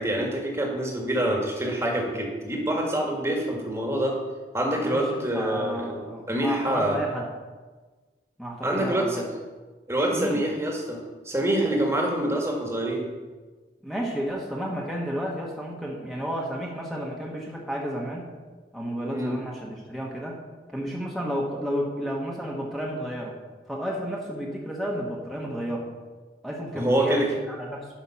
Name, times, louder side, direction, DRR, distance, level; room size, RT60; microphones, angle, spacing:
voice 1, 0.0-4.2 4.5-6.0 6.3-7.0 8.6-9.2 9.9-13.1 19.1-19.4 26.7-27.3, right 1 dB, 15° right, 0 dB, 1.7 m, -26 dB
voice 2, 4.8-7.3 8.4-9.2 10.1-10.4 13.8-18.3 18.7-20.4 20.7-23.3 23.7-25.9 26.4-27.9, equal, ahead, -3 dB, 1.3 m, -32 dB
11.0 x 5.8 x 5.8 m, 1.3 s
head